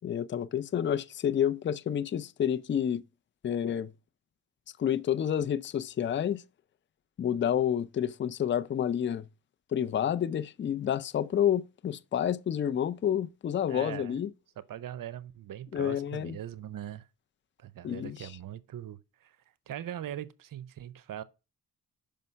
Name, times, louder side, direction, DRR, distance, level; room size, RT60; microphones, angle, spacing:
voice 1, 0.0-3.0 3.4-3.9 4.8-6.4 7.2-9.2 9.7-14.3 15.7-16.4 17.8-18.3, left 9 dB, 30° left, 0.4 m, -29 dB
voice 2, 13.7-14.2 14.6-17.1 17.6-19.4 19.7-21.2, right 11 dB, 60° right, 0.6 m, -41 dB
5.5 x 5.3 x 5.5 m
cardioid pair, 80°, 38 cm